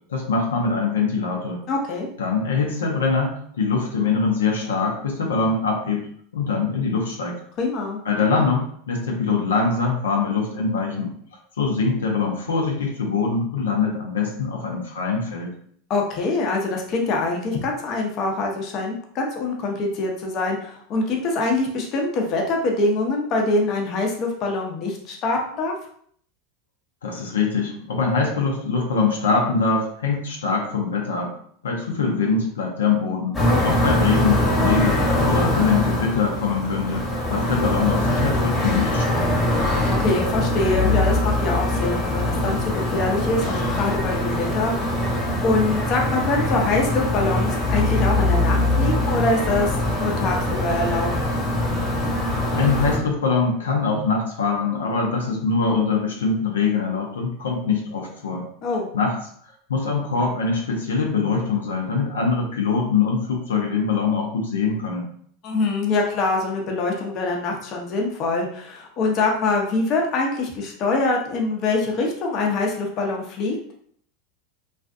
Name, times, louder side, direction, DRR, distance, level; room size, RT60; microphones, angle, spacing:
voice 1, 0.1-1.6 2.2-6.0 6.3-7.4 8.0-11.1 11.6-15.5 27.0-31.3 31.6-33.4 33.6-37.0 37.3-39.5 52.5-58.5 58.9-59.1 59.7-65.1, left 4 dB, 90° left, -1 dB, 0.6 m, -23 dB
voice 2, 1.7-2.1 7.6-8.0 15.9-25.7 33.5-33.7 39.9-51.1 58.6-58.9 65.4-73.5, left 3 dB, 45° left, 1 dB, 0.6 m, -24 dB
sound 1, 33.3-53.0, left 1 dB, 15° left, 1.0 m, -22 dB
2.4 x 2.3 x 2.5 m, 0.62 s
hypercardioid pair, 100°, 0 cm